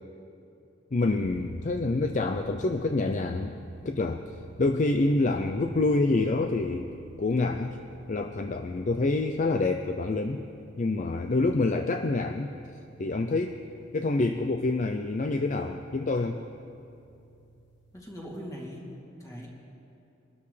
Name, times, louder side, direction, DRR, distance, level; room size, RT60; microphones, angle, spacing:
voice 1, 0.9-3.6 3.8-4.2 4.6-6.9 7.2-7.8 8.1-10.4 10.8-12.5 13.0-13.6 13.9-16.4, left 2 dB, 40° left, 6 dB, 0.5 m, -27 dB
sound 1, 1.2-18.0, right 3 dB, 65° left, 1.2 m, -50 dB
voice 2, 17.9-19.5, equal, 15° left, -4 dB, 2.6 m, -41 dB
23.0 x 12.5 x 3.3 m, 2.7 s
head